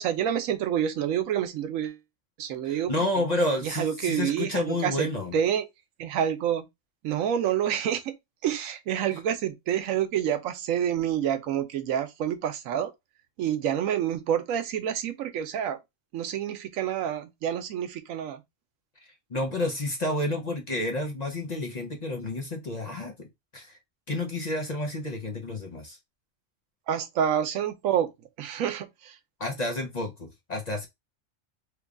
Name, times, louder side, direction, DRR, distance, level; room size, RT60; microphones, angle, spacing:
voice 1, 0.0-2.0 2.4-2.9 3.6-5.1 5.3-5.7 6.0-6.6 7.0-8.2 8.4-12.9 13.4-15.8 16.1-18.4 26.9-28.1 28.4-29.2, right 9 dB, 90° right, 1.0 m, -28 dB
voice 2, 2.6-5.3 19.3-23.3 23.5-23.8 24.1-26.0 29.4-30.9, left 1 dB, 40° left, 0.6 m, -30 dB
3.2 x 2.2 x 3.5 m
omnidirectional pair, 1.4 m